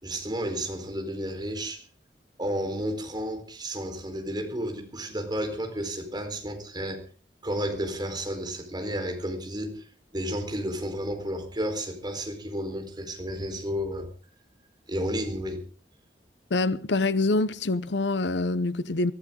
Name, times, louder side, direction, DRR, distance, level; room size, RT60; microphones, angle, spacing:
voice 1, 0.0-1.8 2.4-7.0 7.4-9.8 10.1-14.1 14.9-15.6, equal, 25° right, 4.3 m, -32 dB
voice 2, 16.5-19.1, left 2 dB, 75° left, 0.8 m, -25 dB
23.0 x 15.0 x 3.8 m
head